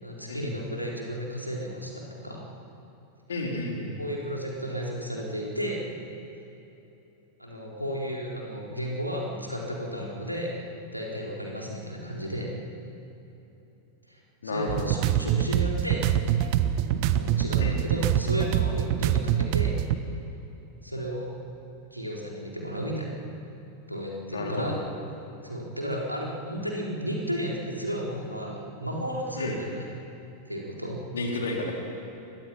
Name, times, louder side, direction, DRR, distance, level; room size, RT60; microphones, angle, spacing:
voice 1, 0.0-2.4 4.0-5.8 7.4-12.5 14.1-14.2 14.4-16.0 17.0-19.8 20.8-21.3 21.9-23.2 23.9-24.7 25.4-29.8 30.4-31.0, equal, 90° right, -2 dB, 4.4 m, -33 dB
voice 2, 3.3-3.9 14.4-14.9 17.6-17.8 24.3-24.8 29.4-29.6 31.1-31.7, left 2 dB, 65° left, 0 dB, 4.2 m, -31 dB
sound 1, 14.7-20.0, right 10 dB, 45° right, 1.1 m, -25 dB
28.5 x 23.0 x 5.9 m, 3.0 s
figure-of-eight pair, 90°, 0 cm